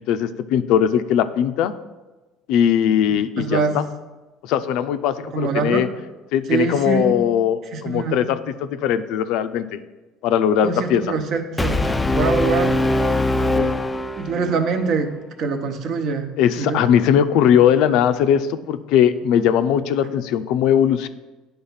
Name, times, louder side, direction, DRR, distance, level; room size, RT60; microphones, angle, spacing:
voice 1, 0.0-1.8 2.5-3.9 4.4-5.9 6.3-9.8 10.2-11.0 13.5-13.8 16.4-21.1, left 9 dB, 70° left, 11 dB, 0.5 m, -19 dB
voice 2, 3.4-3.8 5.3-5.8 6.5-7.2 7.7-8.3 10.6-11.8 12.1-12.8 14.2-15.1 15.4-16.3 16.6-16.8, right 5 dB, 55° right, 6 dB, 0.9 m, -23 dB
Brass instrument, 11.6-14.7, left 2 dB, 10° left, 0.3 m, -21 dB
9.6 x 3.5 x 5.7 m, 1.1 s
supercardioid pair, 110°, 0 cm